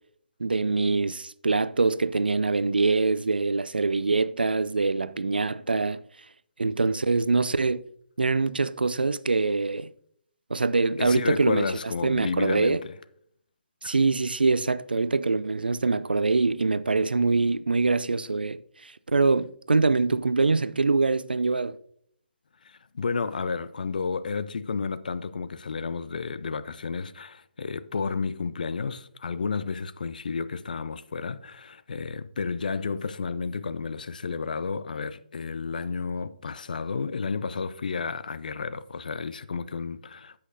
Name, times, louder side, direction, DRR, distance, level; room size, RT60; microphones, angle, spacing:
voice 1, 0.4-6.0 6.6-7.8 8.2-9.9 10.5-11.7 12.0-12.8 13.8-21.8, right 3 dB, 75° right, 0.4 m, -24 dB
voice 2, 11.0-12.9 13.8-13.9 22.6-40.4, left 5 dB, 55° left, 0.5 m, -31 dB
15.0 x 5.7 x 2.6 m
figure-of-eight pair, 140°, 5 cm